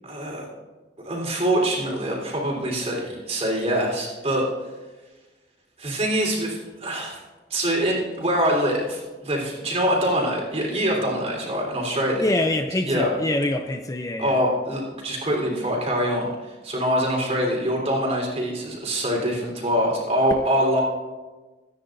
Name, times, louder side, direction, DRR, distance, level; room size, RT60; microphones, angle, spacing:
voice 1, 0.1-0.5 1.0-4.5 5.8-7.2 7.5-12.3 12.8-13.1 14.2-20.8, equal, 35° right, -2 dB, 3.9 m, -24 dB
voice 2, 12.2-14.4, left 1 dB, 20° left, 6 dB, 0.5 m, -25 dB
23.5 x 10.0 x 2.7 m, 1.2 s
head